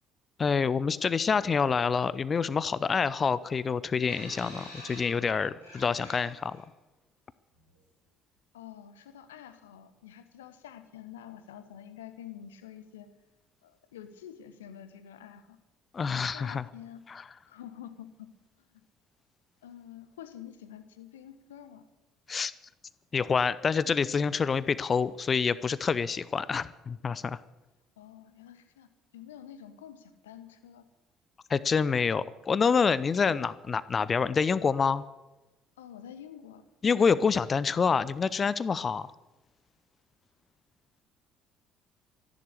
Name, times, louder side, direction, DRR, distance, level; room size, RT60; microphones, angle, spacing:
voice 1, 0.4-6.6 15.9-16.7 17.1-17.2 22.3-22.5 23.1-27.4 31.5-35.0 36.8-39.1, left 5 dB, 30° left, 17 dB, 0.6 m, -27 dB
sound 1, 4.1-6.6 7.6-7.7, equal, 85° right, 3.8 m, -47 dB
voice 2, 8.5-13.1 13.6-15.6 16.1-17.0 17.5-18.3 18.7-18.8 19.6-21.8 28.0-28.9 29.1-30.8 33.3-33.5 35.8-36.6, left 10 dB, 75° left, 11 dB, 1.2 m, -47 dB
13.5 x 11.5 x 8.3 m, 1.1 s
figure-of-eight pair, 55°, 0 cm